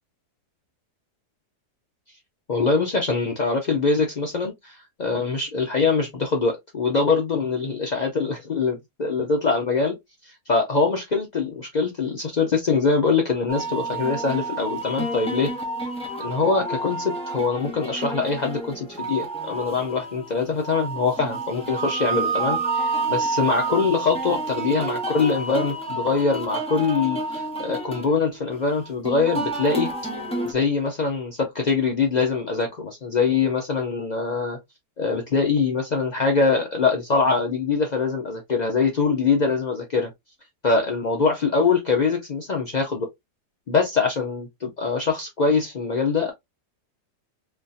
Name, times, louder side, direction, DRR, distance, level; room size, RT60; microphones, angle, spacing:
voice 1, 2.5-10.0 10.2-15.5 16.2-29.9 30.4-34.6 35.0-40.1 40.6-43.0 43.7-46.3, left 4 dB, 65° left, 0.4 m, -23 dB
sound 1, 13.5-30.5, right 3 dB, 5° left, 0.6 m, -29 dB
4.2 x 2.7 x 2.4 m
omnidirectional pair, 1.7 m